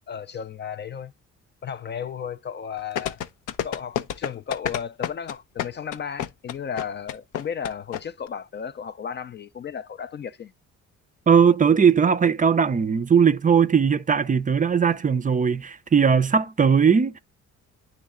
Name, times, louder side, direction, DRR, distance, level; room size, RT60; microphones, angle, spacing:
voice 1, 0.1-1.1 1.6-3.2 3.6-10.5, left 7 dB, 35° left, 0.4 m, -34 dB
sound 1, 3.0-8.0 8.3-8.4, left 10 dB, 85° left, 0.6 m, -28 dB
voice 2, 11.3-17.2, right 6 dB, 25° right, 0.4 m, -19 dB
9.2 x 3.2 x 3.6 m
cardioid pair, 90°, 30 cm